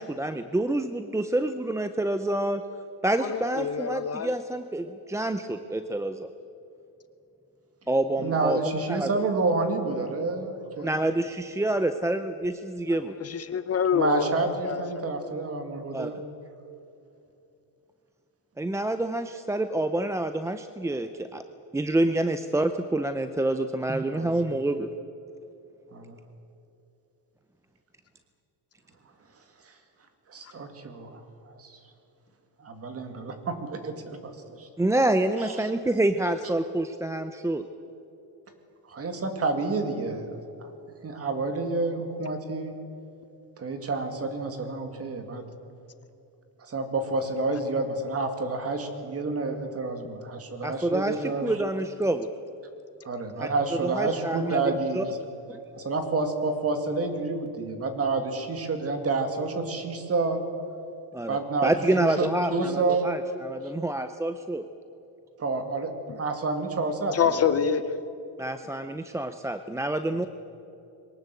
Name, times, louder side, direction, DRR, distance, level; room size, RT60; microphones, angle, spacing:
voice 1, 0.0-2.6 3.0-6.3 7.9-8.6 8.9-9.1 10.8-13.1 15.9-16.1 18.6-21.4 21.7-24.9 34.8-37.6 50.6-52.3 53.4-53.5 53.8-55.0 55.5-55.6 61.1-64.6 68.4-70.2, right 1 dB, 5° right, 9 dB, 0.5 m, -27 dB
voice 2, 3.2-4.3 13.2-15.3 67.1-67.8, left 7 dB, 35° left, 11 dB, 0.8 m, -27 dB
voice 3, 8.2-10.9 13.9-16.2 24.1-24.4 25.9-26.2 29.7-29.8 30.3-31.2 31.5-31.8 32.6-34.7 35.4-35.7 38.9-40.7 41.0-42.8 43.6-45.4 46.6-51.7 53.0-55.2 55.7-60.4 61.3-63.0 65.4-65.9 66.2-67.2, right 3 dB, 35° right, 7 dB, 2.3 m, -29 dB
22.5 x 18.5 x 8.3 m, 2.8 s
cardioid pair, 170°, 41 cm